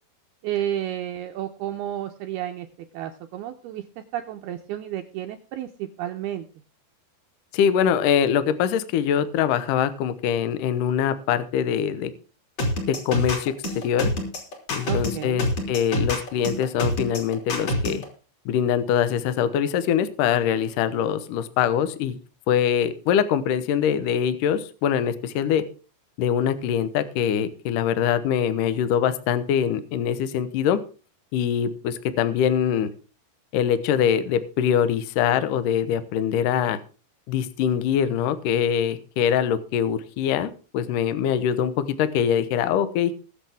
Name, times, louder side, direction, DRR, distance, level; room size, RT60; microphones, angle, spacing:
voice 1, 0.4-2.7 2.9-6.5 14.8-15.4, right 11 dB, 80° right, 6 dB, 2.3 m, -31 dB
voice 2, 7.5-12.1 12.9-13.5 13.8-14.1 14.7-18.0 18.5-22.2 22.5-25.6 26.2-30.8 31.3-32.9 33.5-36.8 37.3-43.1, left 9 dB, 90° left, 12 dB, 1.8 m, -23 dB
sound 1, 12.6-18.0, left 1 dB, 40° left, 3.8 m, -26 dB
21.5 x 7.4 x 3.5 m, 0.35 s
omnidirectional pair, 5.3 m